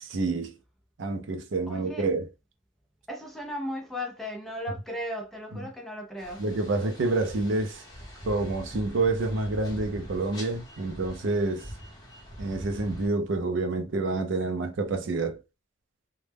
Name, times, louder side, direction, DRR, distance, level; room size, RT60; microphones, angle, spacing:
voice 1, 0.1-0.5 1.0-2.3 6.4-7.8 8.3-11.7 12.4-15.4, right 3 dB, 70° right, 0.4 m, -28 dB
voice 2, 1.7-2.1 3.1-6.4, equal, ahead, 0.4 m, -36 dB
sound 1, 6.2-13.1, equal, 20° left, 0.7 m, -43 dB
2.1 x 2.0 x 3.2 m
head